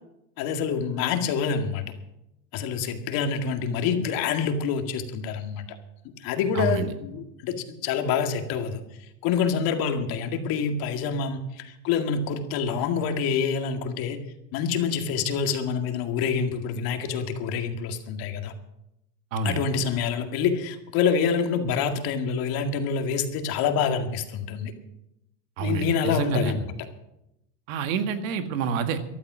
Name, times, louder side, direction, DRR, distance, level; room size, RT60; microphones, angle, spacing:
voice 1, 0.4-1.9 2.5-5.6 6.2-8.8 9.2-14.2 14.5-18.5 19.4-24.7 25.6-26.7, left 6 dB, 65° left, 6 dB, 2.1 m, -26 dB
voice 2, 6.6-6.9 19.3-19.6 25.6-26.5 27.7-29.0, right 5 dB, 85° right, 8 dB, 1.9 m, -27 dB
14.0 x 12.0 x 6.2 m, 0.87 s
supercardioid pair, 110°, 39 cm